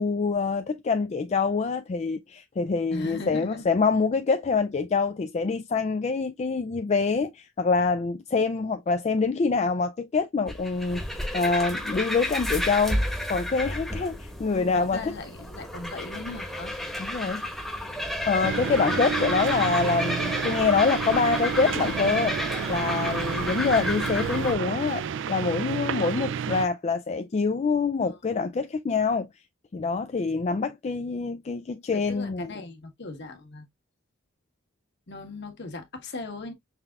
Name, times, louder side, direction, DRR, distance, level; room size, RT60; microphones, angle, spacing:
voice 1, 0.0-13.0 13.3-15.1 17.0-17.4 18.3-22.4 22.7-29.3 29.7-32.5, left 4 dB, 30° left, 0.3 m, -25 dB
voice 2, 2.9-3.7 14.6-16.7 21.1-21.4 28.0-28.6 31.9-33.7 35.1-36.5, left 2 dB, 55° left, 1.3 m, -39 dB
sound 1, 10.5-24.5, left 1 dB, ahead, 1.0 m, -32 dB
sound 2, 18.4-26.7, right 7 dB, 60° right, 0.4 m, -30 dB
5.8 x 3.4 x 2.3 m
head